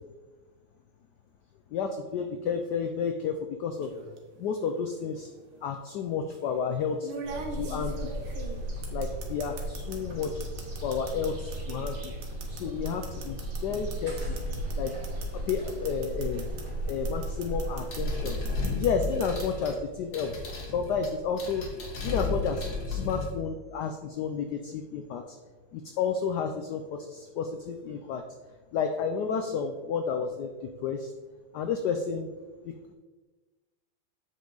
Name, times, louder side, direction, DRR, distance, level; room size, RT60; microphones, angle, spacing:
voice 1, 1.7-3.9 4.4-5.3 5.6-7.1 7.5-8.1 8.9-10.3 10.8-12.1 12.5-14.4 14.8-15.0 15.5-16.5 16.9-18.4 18.7-20.3 20.7-21.7 22.0-25.4 25.7-28.2 28.7-31.1 31.5-32.3 32.6-32.9, left 6 dB, 80° left, 6 dB, 0.9 m, -31 dB
sound 1, 3.8-4.2 5.4-5.5 7.0-10.0 10.2-16.6 16.9-18.0 18.3-19.4, right 4 dB, 85° right, 2.0 m, -41 dB
sound 2, 7.2-18.8, right 1 dB, 45° right, 2.0 m, -35 dB
sound 3, 17.9-23.3, left 4 dB, 60° left, 1.9 m, -34 dB
7.7 x 5.4 x 3.9 m, 1.3 s
omnidirectional pair, 2.3 m